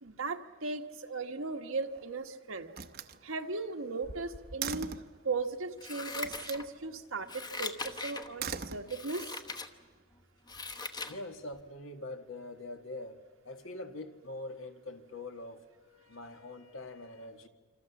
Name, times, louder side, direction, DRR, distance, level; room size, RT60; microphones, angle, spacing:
voice 1, 0.0-2.7 3.2-4.9 5.2-9.4, right 3 dB, 85° right, 1.5 m, -37 dB
Slam, 1.6-2.2 2.7-5.2 6.2-6.7 8.2-9.3, right 6 dB, 50° right, 0.9 m, -41 dB
Scissors, 5.8-6.9 7.3-8.3 8.9-9.7 10.1-11.2 11.6-11.7, left 3 dB, 20° left, 1.0 m, -40 dB
voice 2, 11.0-17.5, left 2 dB, 75° left, 1.7 m, -44 dB
26.5 x 26.5 x 7.2 m
head